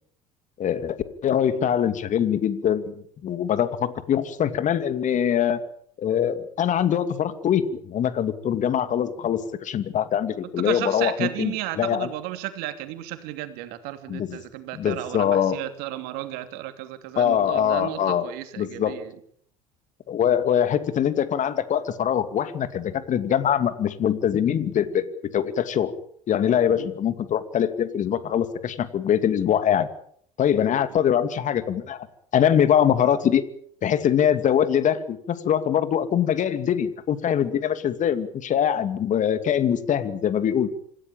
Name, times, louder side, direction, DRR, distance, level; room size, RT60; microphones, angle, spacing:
voice 1, 0.6-1.0 1.2-5.6 6.0-12.1 14.1-14.4 14.7-15.6 17.2-18.3 18.6-19.0 20.1-25.0 25.3-25.9 26.3-29.9 30.4-32.1 32.3-33.4 33.8-40.7, left 9 dB, 45° left, 2.5 m, -23 dB
voice 2, 10.6-19.1 26.7-26.9, right 14 dB, 65° right, 3.0 m, -33 dB
26.5 x 16.5 x 8.9 m
hypercardioid pair, 65°, 18 cm